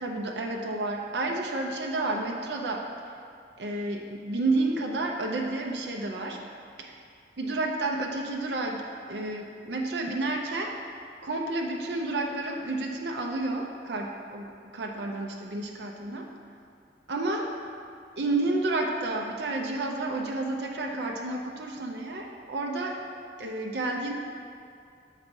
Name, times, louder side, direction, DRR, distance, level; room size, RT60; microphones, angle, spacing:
voice 1, 0.0-2.8 3.6-6.4 6.8-7.0 7.4-10.7 11.2-16.3 17.1-17.5 18.2-23.0 23.4-24.1, right 2 dB, 70° right, 0 dB, 0.6 m, -30 dB
7.2 x 4.1 x 5.2 m, 2.4 s
head